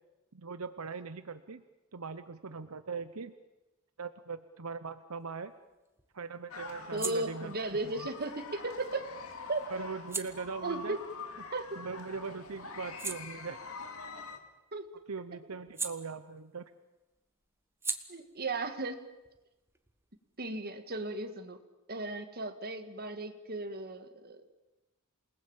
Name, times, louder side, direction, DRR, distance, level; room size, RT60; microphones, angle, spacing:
voice 1, 0.3-1.6 1.9-3.3 4.0-5.5 6.1-8.1 9.7-11.0 11.8-13.6 15.1-16.6, right 4 dB, 80° right, 11 dB, 0.9 m, -40 dB
sound 1, 5.2-12.1 12.5-16.7 17.0-20.4, right 4 dB, 10° right, 1.3 m, -45 dB
sound 2, 6.5-14.4, left 4 dB, 75° left, 2.5 m, -45 dB
voice 2, 6.9-9.1 9.5-9.6 10.6-11.0 11.5-11.8 14.7-14.9 18.1-19.0 20.4-21.6 21.9-24.5, right 2 dB, 45° right, 7 dB, 2.0 m, -36 dB
28.0 x 19.5 x 7.3 m, 1.1 s
head